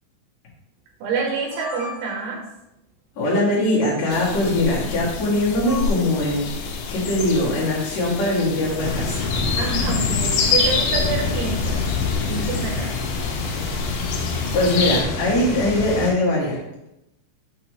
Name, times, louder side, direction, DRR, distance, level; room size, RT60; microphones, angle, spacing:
voice 1, 1.0-2.4 9.6-11.9 12.3-12.9, right 4 dB, 80° right, 1 dB, 3.5 m, -27 dB
Camcorder Beeps, 1.2-2.4 3.8-4.0 5.7-6.1, left 2 dB, 45° right, 2.4 m, -36 dB
voice 2, 3.2-6.5 6.9-9.3 14.5-16.6, left 1 dB, 50° left, -6 dB, 2.3 m, -21 dB
sound 1, 4.1-15.0, left 4 dB, 85° left, 3.5 m, -27 dB
sound 2, 8.8-16.1, left 4 dB, 65° left, 2.3 m, -26 dB
7.9 x 5.7 x 3.1 m, 0.89 s
omnidirectional pair, 5.7 m